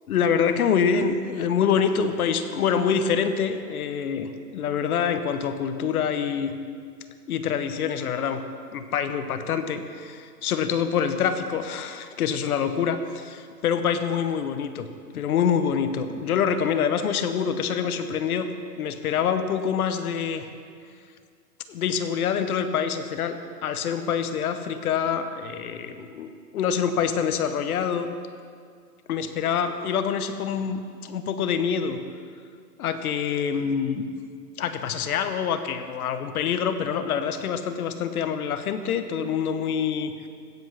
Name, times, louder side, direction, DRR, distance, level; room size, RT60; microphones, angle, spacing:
voice 1, 0.1-6.5 7.3-8.4 8.7-14.9 15.1-18.5 18.8-20.5 21.7-28.1 29.1-32.0 32.8-34.1 34.6-40.3, left 7 dB, 60° left, 9 dB, 1.0 m, -26 dB
15.5 x 5.3 x 5.7 m, 2.2 s
hypercardioid pair, 155°, 50 cm